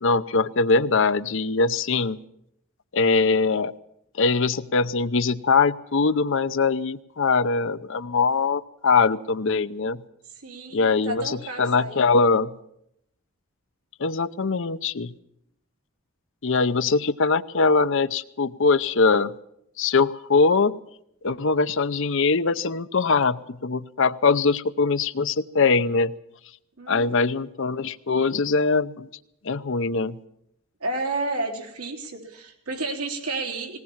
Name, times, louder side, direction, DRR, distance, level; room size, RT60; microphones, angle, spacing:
voice 1, 0.0-2.2 2.9-3.7 4.2-10.0 10.7-12.5 14.0-15.1 16.4-19.3 19.8-20.7 21.2-26.1 26.9-29.1 29.4-30.2, left 4 dB, 60° left, 13 dB, 0.7 m, -22 dB
voice 2, 10.3-12.0 26.8-27.4 30.8-33.8, right 2 dB, 90° right, 1 dB, 3.8 m, -31 dB
20.5 x 18.0 x 7.3 m, 0.76 s
head